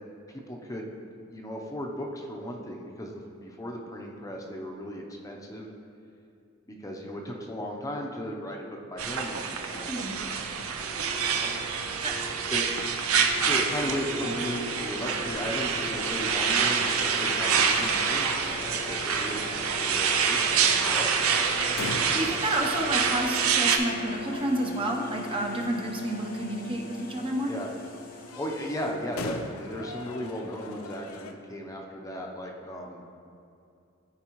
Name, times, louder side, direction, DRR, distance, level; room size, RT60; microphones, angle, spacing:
voice 1, 0.3-1.0 1.3-5.7 6.7-10.5 12.5-12.6 13.4-21.1 27.4-27.7 28.3-33.3, equal, 15° left, 0 dB, 0.7 m, -36 dB
sound 1, 9.0-23.8, right 6 dB, 75° right, 0.6 m, -27 dB
sound 2, 11.1-28.9, left 2 dB, 45° left, 0.9 m, -41 dB
sound 3, 21.7-31.3, left 3 dB, 75° left, 0.5 m, -43 dB
voice 2, 22.1-27.5, right 1 dB, 25° right, 0 dB, 0.8 m, -30 dB
13.5 x 4.7 x 3.0 m, 2.6 s
head